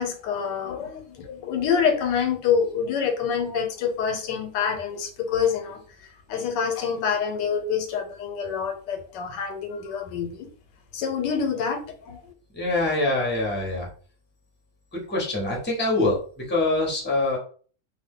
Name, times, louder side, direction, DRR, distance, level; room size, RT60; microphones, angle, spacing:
voice 1, 0.0-5.8 6.3-10.5 10.9-12.2, left 7 dB, 90° left, 1.3 m, -26 dB
voice 2, 12.5-13.9 14.9-17.4, left 2 dB, 10° left, 0.7 m, -24 dB
2.7 x 2.5 x 3.6 m
omnidirectional pair, 1.8 m